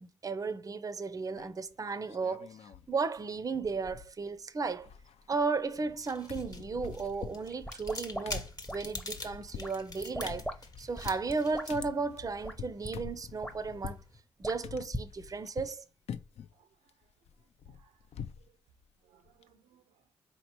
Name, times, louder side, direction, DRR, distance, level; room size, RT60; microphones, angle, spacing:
voice 1, 0.0-2.5 2.9-4.9 5.3-10.5 10.8-14.0 14.4-15.9, right 4 dB, 30° right, 0.5 m, -34 dB
sound 1, 1.3-1.7 2.1-2.9 3.2-3.3 3.5-4.4 4.6-6.0 6.3-14.1 14.6-15.8 16.1-16.5 16.9-18.5 18.8-18.9 19.2-19.4, left 7 dB, 60° left, 0.4 m, -46 dB
sound 2, 5.7-14.2, left 2 dB, 30° left, 0.9 m, -47 dB
water bubbles in bottle, 7.5-9.2 9.6-10.6 10.8-11.9 12.4-12.5 12.8-12.9 13.3-13.9 14.4-15.1, equal, 5° left, 0.7 m, -40 dB
voice 2, 16.3-17.1 17.4-18.1 18.4-18.5 19.0-20.1, right 8 dB, 80° right, 0.5 m, -68 dB
4.2 x 2.9 x 2.9 m
hypercardioid pair, 45°, 12 cm